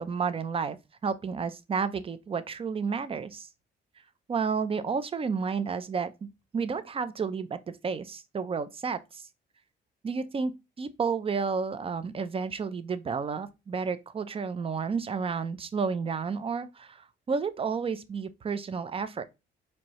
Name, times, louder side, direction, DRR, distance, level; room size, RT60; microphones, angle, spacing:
voice 1, 0.0-3.5 4.3-9.2 10.0-19.2, right 5 dB, 30° right, 0.5 m, -31 dB
4.4 x 2.7 x 3.0 m
cardioid pair, 90°, 20 cm